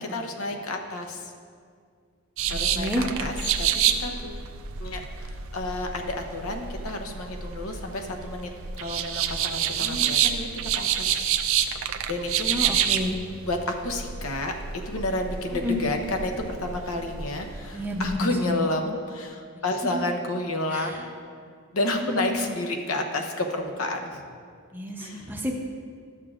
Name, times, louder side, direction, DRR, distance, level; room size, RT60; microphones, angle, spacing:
voice 1, 0.0-1.3 2.5-4.4 4.8-8.5 8.8-11.3 12.1-12.6 13.4-14.5 14.8-21.0 21.7-24.2 25.0-25.3, left 2 dB, 70° left, 4 dB, 0.8 m, -30 dB
sound 1, 2.4-18.2, right 9 dB, 60° right, 0.4 m, -28 dB
voice 2, 2.7-3.0 9.8-10.2 12.5-13.2 15.6-15.8 17.7-18.1 18.4-18.6 19.9-20.0 20.7-21.0 22.2-22.3 24.7-25.5, left 1 dB, 10° right, 1 dB, 0.6 m, -30 dB
12.5 x 6.8 x 2.4 m, 2.1 s
head